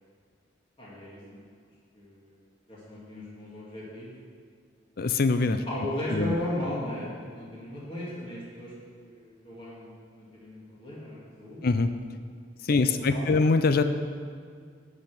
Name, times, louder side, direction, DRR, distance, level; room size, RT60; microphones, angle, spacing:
voice 1, 0.8-1.4 1.9-2.3 2.7-4.1 5.7-11.6 12.7-13.4, left 1 dB, 25° left, -7 dB, 2.2 m, -37 dB
voice 2, 5.0-5.6 6.1-6.4 11.6-11.9 12.6-13.8, left 3 dB, 50° left, 9 dB, 0.5 m, -23 dB
11.5 x 5.2 x 6.0 m, 2.1 s
head